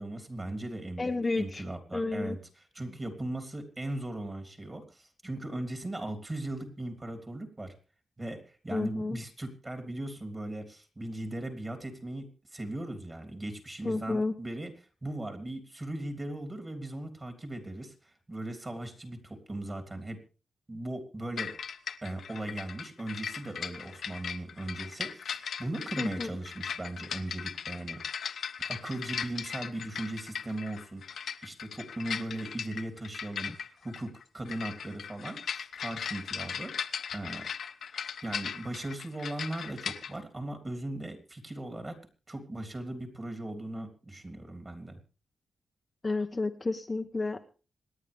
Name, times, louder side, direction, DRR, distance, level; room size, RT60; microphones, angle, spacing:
voice 1, 0.0-2.4 2.7-7.7 8.2-12.3 12.5-14.7 15.0-20.2 20.7-21.5 22.0-28.0 28.7-37.5 38.2-42.0 42.3-45.0, right 1 dB, 25° right, 6 dB, 3.2 m, -38 dB
voice 2, 1.0-1.6 1.9-2.4 8.7-9.2 13.8-14.3 26.0-26.3 46.0-47.4, left 3 dB, 25° left, 5 dB, 1.1 m, -31 dB
sound 1, 21.4-40.1, left 7 dB, 70° left, 0.9 m, -38 dB
26.5 x 9.9 x 3.5 m, 0.34 s
cardioid pair, 100°, 0 cm